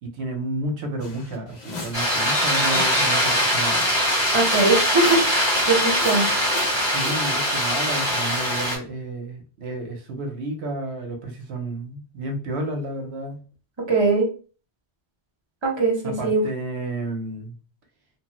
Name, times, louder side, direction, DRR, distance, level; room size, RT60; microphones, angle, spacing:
voice 1, 0.0-3.8 6.9-13.4 16.0-17.5, right 1 dB, 85° right, 3 dB, 0.9 m, -31 dB
sound 1, 1.0-3.1 3.6-4.1 4.4-7.2, left 2 dB, 50° left, 0.6 m, -38 dB
sound 2, 1.9-8.8, equal, 25° left, 1.3 m, -22 dB
voice 2, 4.3-6.3 13.9-14.3 15.6-16.4, right 3 dB, 30° right, -1 dB, 0.8 m, -21 dB
3.0 x 2.0 x 2.9 m, 0.37 s
omnidirectional pair, 1.1 m